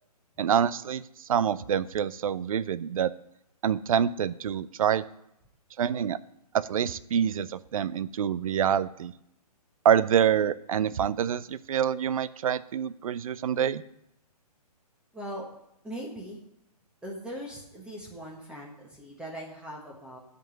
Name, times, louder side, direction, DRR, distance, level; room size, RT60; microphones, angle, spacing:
voice 1, 0.4-3.1 3.6-5.0 5.8-6.2 6.5-9.1 9.8-13.8, right 8 dB, 60° right, 17 dB, 0.5 m, -26 dB
voice 2, 15.1-15.5 15.8-16.4 17.0-20.2, equal, 5° right, -2 dB, 1.5 m, -40 dB
10.5 x 5.3 x 7.8 m, 0.80 s
figure-of-eight pair, 140°, 20 cm